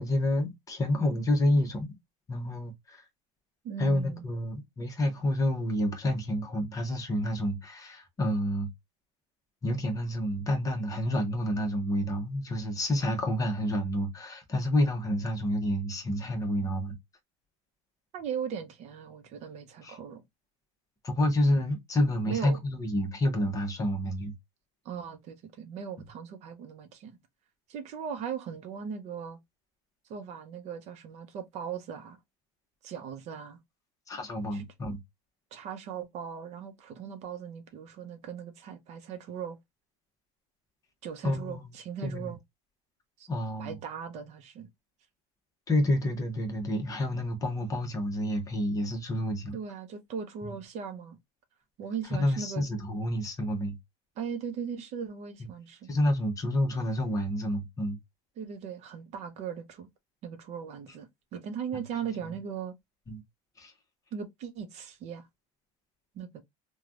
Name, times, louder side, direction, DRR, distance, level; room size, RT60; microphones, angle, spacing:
voice 1, 0.0-2.0 2.3-3.0 3.8-8.7 9.6-17.0 19.8-20.0 21.0-24.3 34.1-35.0 41.2-41.7 42.0-42.3 43.3-43.8 45.7-49.6 52.1-53.7 55.9-58.0 61.7-61.8 63.1-63.2 63.6-63.7, left 1 dB, 20° left, 0.9 m, -29 dB
voice 2, 3.6-4.2 18.1-20.2 22.3-22.6 24.8-27.2 27.7-29.4 30.1-32.2 32.8-33.6 34.5-34.7 35.5-39.6 41.0-42.4 43.2-43.3 43.6-44.7 49.5-51.2 51.8-52.7 54.2-55.9 58.4-59.9 60.2-62.7 64.1-65.3 66.1-66.4, right 7 dB, 45° right, 0.7 m, -38 dB
3.2 x 2.3 x 2.4 m
cardioid pair, 145°, 16 cm